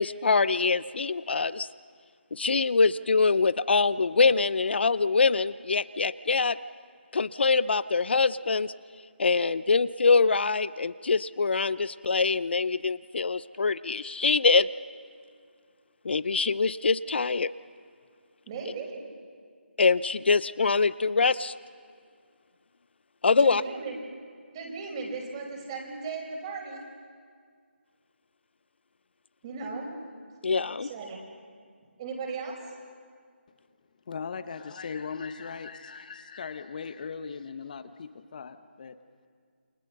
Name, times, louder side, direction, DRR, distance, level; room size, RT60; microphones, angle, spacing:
voice 1, 0.0-1.7 2.3-6.6 7.1-8.7 9.2-14.7 16.0-17.5 19.8-21.5 23.2-23.6 30.4-30.9, left 4 dB, 60° left, 17 dB, 0.6 m, -24 dB
voice 2, 18.5-19.0 23.4-24.0 24.5-26.8 29.4-29.9 30.8-31.2 32.0-32.5, right 4 dB, 25° right, 2 dB, 5.1 m, -36 dB
voice 3, 34.1-39.0, left 5 dB, 40° left, 10 dB, 1.0 m, -38 dB
29.0 x 25.0 x 6.7 m, 2.1 s
figure-of-eight pair, 160°, 7 cm